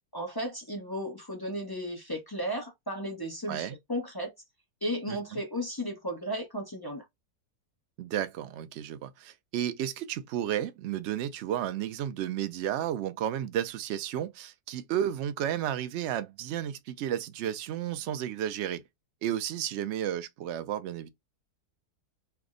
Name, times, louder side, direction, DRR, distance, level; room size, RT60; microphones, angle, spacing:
voice 1, 0.1-4.3 4.8-7.0, equal, 25° left, 0.5 m, -34 dB
voice 2, 8.0-18.8 19.2-21.1, right 10 dB, 75° right, 0.6 m, -32 dB
3.4 x 2.1 x 3.6 m
omnidirectional pair, 1.7 m